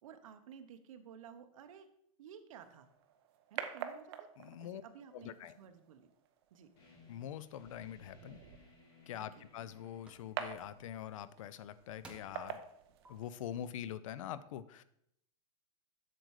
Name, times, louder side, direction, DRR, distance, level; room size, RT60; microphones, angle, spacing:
voice 1, 0.0-1.9 2.2-2.9 3.5-4.3 4.6-6.1 6.5-6.7 9.2-9.5, right 8 dB, 65° right, 9 dB, 1.0 m, -54 dB
sound 1, 2.6-13.6, right 9 dB, 45° right, 0.7 m, -48 dB
voice 2, 4.4-4.8 5.1-5.5 7.1-8.4 9.1-12.6 13.1-14.8, left 10 dB, 60° left, 16 dB, 0.5 m, -44 dB
sound 2, 6.8-12.2, left 4 dB, 45° left, 2.9 m, -64 dB
sound 3, 8.7-8.8 9.4-9.7 10.1-10.3 11.5-11.6 12.0-12.5 13.0-13.1, right 3 dB, 5° right, 0.6 m, -55 dB
7.7 x 6.8 x 4.8 m, 0.75 s
supercardioid pair, 170°, 18 cm